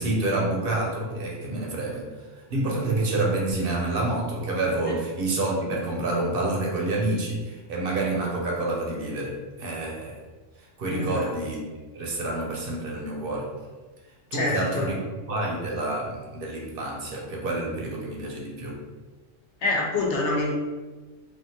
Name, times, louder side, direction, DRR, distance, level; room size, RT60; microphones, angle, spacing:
voice 1, 0.0-10.2 10.8-11.6 11.9-13.5 14.3-18.8, right 2 dB, 55° right, -2 dB, 0.7 m, -28 dB
voice 2, 10.9-11.3 14.3-14.9 19.6-20.5, left 2 dB, 65° left, -2 dB, 0.9 m, -26 dB
3.4 x 2.4 x 2.7 m, 1.2 s
omnidirectional pair, 1.3 m